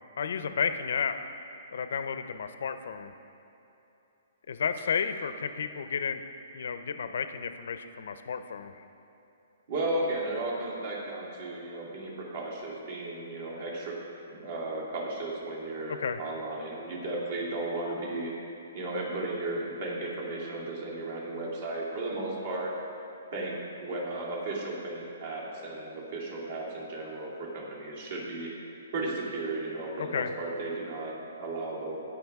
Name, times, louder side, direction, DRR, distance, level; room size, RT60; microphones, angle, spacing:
voice 1, 0.2-1.2 1.7-3.1 4.5-6.2 6.5-8.7 16.0-16.2 30.1-30.3, left 6 dB, 70° left, 10 dB, 0.5 m, -32 dB
voice 2, 9.7-14.0 14.3-18.3 18.7-22.7 23.3-28.5 28.9-32.0, right 2 dB, 55° right, -4 dB, 2.3 m, -34 dB
17.5 x 6.0 x 3.6 m, 2.9 s
hypercardioid pair, 165°, 0 cm